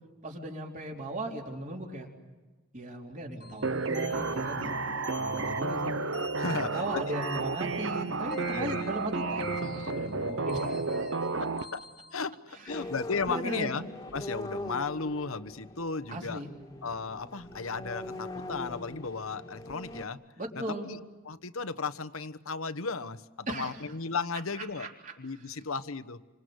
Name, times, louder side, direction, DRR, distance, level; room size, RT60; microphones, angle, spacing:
voice 1, 0.2-2.1 2.7-4.6 5.2-5.9 6.4-11.2 12.5-12.9 13.3-13.8 16.1-16.5 20.4-20.9 23.5-23.8 24.6-25.1, right 1 dB, 35° right, 0 dB, 3.9 m, -37 dB
sound 1, 3.4-12.1, left 1 dB, 45° left, 1.9 m, -45 dB
sound 2, 3.6-11.6, right 3 dB, 65° right, 1.1 m, -32 dB
voice 2, 4.6-5.0 5.6-5.8 6.4-7.1 8.5-9.0 11.3-11.8 12.1-13.8 14.1-16.4 16.8-20.2 20.6-21.0 21.2-24.9 25.2-26.2, left 4 dB, 75° left, 10 dB, 1.2 m, -35 dB
sound 3, 12.7-20.0, left 1 dB, 15° left, 2.0 m, -42 dB
28.5 x 25.5 x 8.0 m, 1.2 s
head